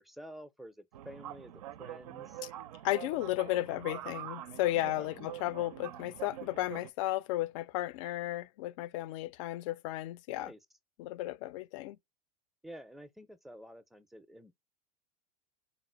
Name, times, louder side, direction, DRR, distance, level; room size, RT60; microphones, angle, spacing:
voice 1, 0.0-2.4 5.0-5.1 10.3-10.6 12.6-14.5, equal, ahead, 0.5 m, -50 dB
sound 1, 0.9-6.9, right 12 dB, 70° right, 0.4 m, -45 dB
voice 2, 2.8-10.5 11.0-12.0, left 16 dB, 55° left, 0.4 m, -34 dB
4.0 x 2.1 x 4.3 m
hypercardioid pair, 95°, 20 cm